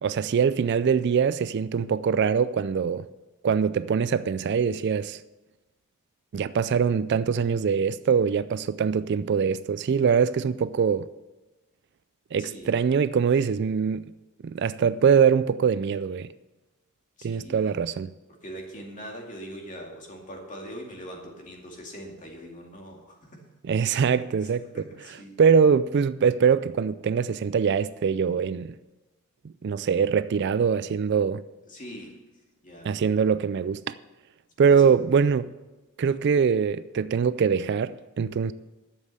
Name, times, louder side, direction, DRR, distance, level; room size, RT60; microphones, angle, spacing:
voice 1, 0.0-3.0 3.4-5.2 6.3-11.1 12.3-14.1 14.4-16.3 17.2-18.1 23.6-28.8 29.6-31.4 32.8-33.9 34.6-35.5 36.0-38.5, right 6 dB, 50° right, 0.3 m, -23 dB
voice 2, 12.4-12.8 17.2-17.7 18.4-23.4 24.7-25.3 31.7-32.1 32.6-32.9 34.6-35.0, equal, 35° left, 2.3 m, -41 dB
11.5 x 7.3 x 6.6 m
head